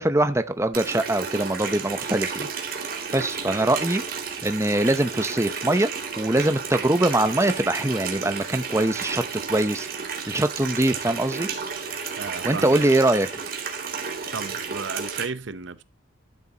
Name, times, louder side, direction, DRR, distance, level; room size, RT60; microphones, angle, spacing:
voice 1, 0.0-2.5 3.1-4.0 4.4-5.9 6.2-9.2 9.5-11.5 12.4-13.3, right 1 dB, 15° right, 0.7 m, -23 dB
Water tap faucet, 0.7-15.2, right 5 dB, 45° right, 2.6 m, -32 dB
voice 2, 12.2-12.8 14.3-15.8, right 4 dB, 70° right, 0.8 m, -34 dB
12.5 x 7.9 x 2.9 m
head